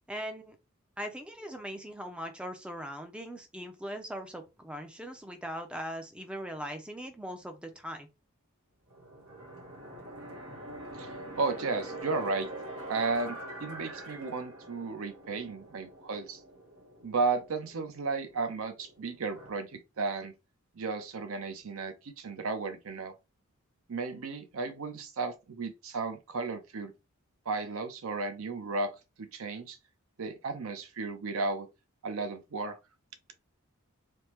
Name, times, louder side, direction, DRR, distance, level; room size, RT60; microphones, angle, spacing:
voice 1, 0.1-0.6 1.0-8.1, equal, 5° right, 0.4 m, -40 dB
sound 1, 8.9-19.6, right 1 dB, 85° right, 1.2 m, -45 dB
voice 2, 11.0-12.5 12.9-16.4 17.0-20.3 20.7-23.1 23.9-26.9 27.5-28.9 29.2-29.8 30.2-31.7 32.0-32.8, right 4 dB, 70° right, 0.5 m, -34 dB
3.4 x 2.1 x 2.9 m
head